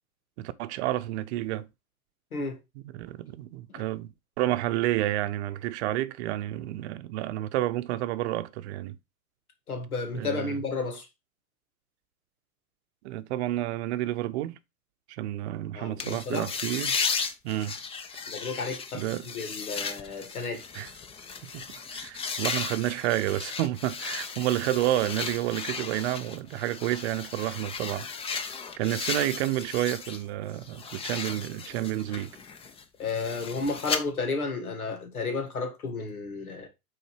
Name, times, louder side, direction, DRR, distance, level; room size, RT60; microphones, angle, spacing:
voice 1, 0.4-1.7 2.9-9.0 10.1-10.6 13.0-14.6 15.1-17.0 17.4-17.7 18.9-19.3 20.7-20.9 21.5-28.1 28.8-32.3, right 14 dB, 50° right, 0.7 m, -30 dB
voice 2, 2.3-2.6 3.7-3.8 9.7-11.1 15.7-16.5 18.3-20.6 33.0-36.7, left 3 dB, 90° left, 1.7 m, -32 dB
sound 1, 16.0-30.2 30.5-34.0, left 5 dB, 15° left, 0.5 m, -35 dB
5.5 x 4.0 x 4.5 m
hypercardioid pair, 110°, 42 cm